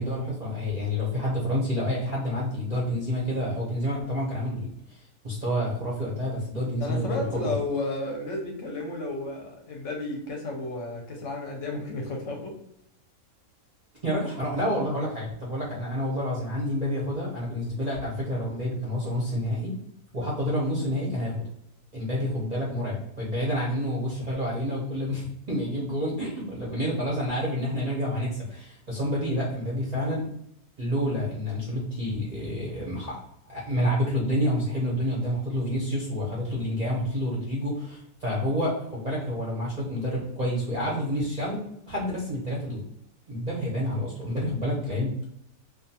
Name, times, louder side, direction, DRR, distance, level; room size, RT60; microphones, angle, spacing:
voice 1, 0.0-4.7 5.2-7.6 14.0-19.7 20.1-21.3 21.9-30.3 30.8-33.2 33.5-41.6 41.9-42.8 43.3-45.3, equal, 45° right, -5 dB, 0.6 m, -28 dB
voice 2, 6.8-12.5, left 2 dB, 65° left, 0 dB, 0.9 m, -32 dB
2.4 x 2.3 x 2.7 m, 0.75 s
omnidirectional pair, 1.5 m